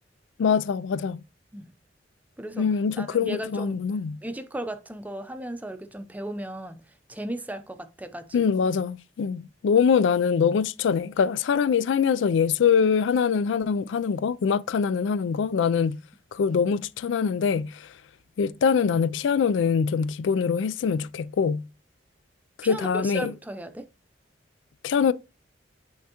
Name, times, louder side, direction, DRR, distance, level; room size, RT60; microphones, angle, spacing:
voice 1, 0.4-1.2 2.6-4.2 8.3-16.0 16.3-17.9 18.4-21.6 22.6-23.3 24.8-25.1, left 6 dB, 80° left, 0.3 m, -23 dB
voice 2, 3.0-3.8 4.2-6.8 7.1-8.5 22.6-23.9, right 1 dB, 10° right, 0.5 m, -36 dB
9.5 x 3.5 x 2.9 m
head